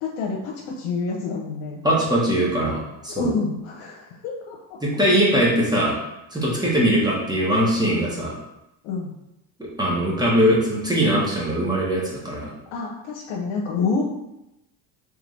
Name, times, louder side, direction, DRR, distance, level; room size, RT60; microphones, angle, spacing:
voice 1, 0.0-1.8 3.1-4.8 7.5-7.6 8.8-9.1 12.7-14.0, left 4 dB, 85° left, -2 dB, 0.8 m, -28 dB
voice 2, 1.8-3.3 4.8-5.9 6.3-8.3 9.6-12.5, equal, 10° right, -5 dB, 1.1 m, -21 dB
3.7 x 3.3 x 3.2 m, 0.90 s
supercardioid pair, 120°, 50 cm